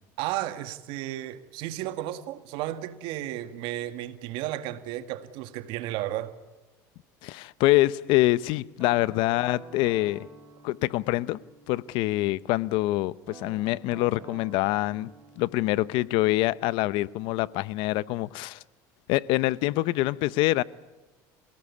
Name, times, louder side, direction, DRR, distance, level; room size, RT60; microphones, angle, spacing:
voice 1, 0.2-6.3, right 14 dB, 70° right, 1.9 m, -33 dB
voice 2, 7.2-10.3 10.6-11.4 11.7-15.1 15.4-18.6 19.1-20.6, left 18 dB, 70° left, 0.7 m, -25 dB
Guitar, 8.8-12.6 13.2-18.0, right 4 dB, 25° right, 4.1 m, -50 dB
26.5 x 18.5 x 8.4 m
supercardioid pair, 115°, 9 cm